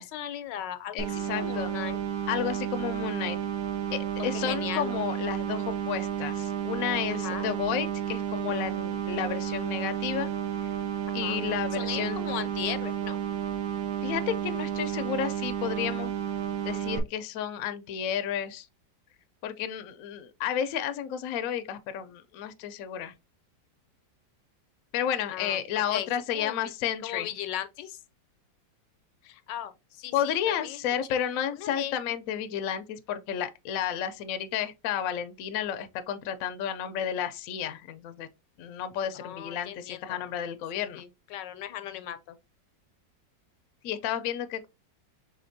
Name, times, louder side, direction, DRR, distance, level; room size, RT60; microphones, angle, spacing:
voice 1, 0.0-1.0 1.3-2.0 4.3-4.9 7.1-7.5 11.2-11.4 11.7-13.2 25.3-25.6 25.9-26.1 26.3-26.6 27.0-28.0 29.2-30.8 31.1-31.2 31.6-32.0 39.1-40.2 40.7-42.2, left 11 dB, 85° left, 1.2 m, -37 dB
voice 2, 0.9-1.7 2.3-3.4 3.9-10.3 11.1-12.2 14.0-16.1 16.6-18.7 19.4-23.1 24.9-27.3 30.1-38.3 38.6-41.0 43.8-44.7, left 9 dB, 70° left, 0.8 m, -32 dB
sound 1, 1.0-17.0, right 9 dB, 85° right, 1.5 m, -32 dB
5.0 x 3.7 x 2.6 m
omnidirectional pair, 1.9 m